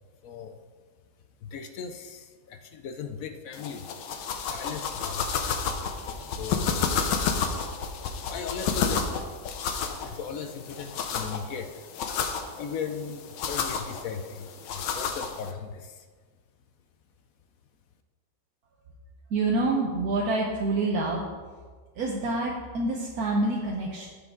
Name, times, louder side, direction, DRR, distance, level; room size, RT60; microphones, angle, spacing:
voice 1, 0.2-0.6 1.4-3.9 4.4-5.3 6.4-6.7 7.5-9.4 10.0-11.8 12.6-16.1, left 6 dB, 70° left, 8 dB, 0.9 m, -38 dB
sound 1, 3.5-15.5, left 6 dB, 85° left, 1.5 m, -31 dB
voice 2, 19.3-21.3 22.0-24.1, right 2 dB, 60° right, -2 dB, 1.4 m, -27 dB
15.0 x 5.1 x 3.6 m, 1.5 s
omnidirectional pair, 1.9 m